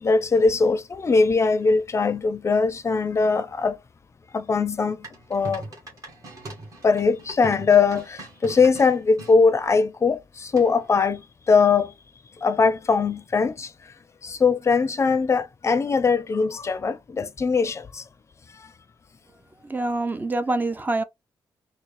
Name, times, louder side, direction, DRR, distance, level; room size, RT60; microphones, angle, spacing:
voice 1, 0.0-3.8 4.3-5.7 6.8-11.2 11.5-11.9 12.4-13.7 14.2-18.0, left 4 dB, 35° left, 0.5 m, -21 dB
sound 1, 5.0-9.4 10.6-11.0, right 2 dB, 40° right, 1.5 m, -40 dB
voice 2, 19.6-21.0, right 2 dB, 20° right, 0.5 m, -25 dB
4.5 x 2.0 x 3.2 m
cardioid pair, 120°, 9 cm